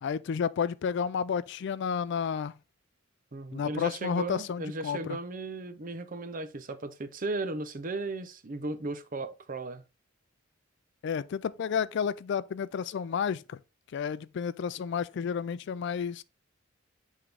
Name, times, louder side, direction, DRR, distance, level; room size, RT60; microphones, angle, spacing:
voice 1, 0.0-2.6 3.5-5.2 11.0-13.6 13.9-16.2, left 7 dB, 60° left, 0.3 m, -31 dB
voice 2, 3.3-9.8, right 2 dB, 45° right, 0.7 m, -36 dB
8.0 x 3.6 x 3.3 m
head